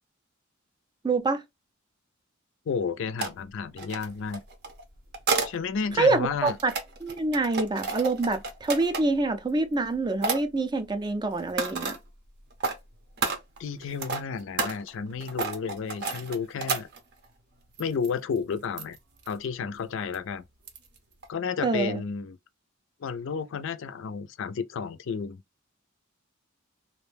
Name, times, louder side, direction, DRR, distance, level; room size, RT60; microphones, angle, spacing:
voice 1, 1.0-1.4 6.0-6.7 7.0-11.9 21.6-22.0, right 3 dB, 20° right, 0.4 m, -26 dB
voice 2, 2.7-4.4 5.4-6.6 13.6-16.9 17.8-19.0 19.3-20.5 21.3-22.4 23.0-25.4, left 5 dB, 65° left, 0.4 m, -32 dB
sound 1, 3.2-3.3 3.8-5.6 6.2-9.2 9.7-9.9 10.2-10.4 11.3-12.0 12.5-12.8 13.2-17.3 17.8-18.1 18.4-18.5 18.8-19.0 19.2-19.3 20.1-20.2 20.7-21.0 21.2-21.3, right 4 dB, 55° right, 0.6 m, -31 dB
2.5 x 2.1 x 3.2 m
head